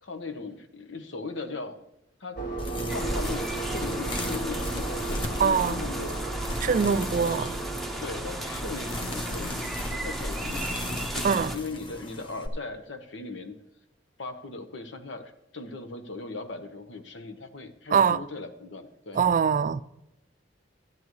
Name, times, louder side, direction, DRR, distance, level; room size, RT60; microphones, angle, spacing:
voice 1, 0.0-1.8 2.2-2.4 2.9-7.6 8.0-13.6 14.2-19.2, left 3 dB, 75° left, 1.1 m, -39 dB
sound 1, 2.4-11.8, right 2 dB, 50° left, 2.2 m, -36 dB
sound 2, 2.6-12.5, left 1 dB, 30° left, 1.0 m, -38 dB
sound 3, 2.9-11.6, right 1 dB, ahead, 1.0 m, -35 dB
voice 2, 5.4-5.8 6.6-7.5 11.2-11.5 17.9-18.2 19.2-19.8, right 6 dB, 45° right, 0.4 m, -23 dB
12.5 x 10.5 x 3.1 m
head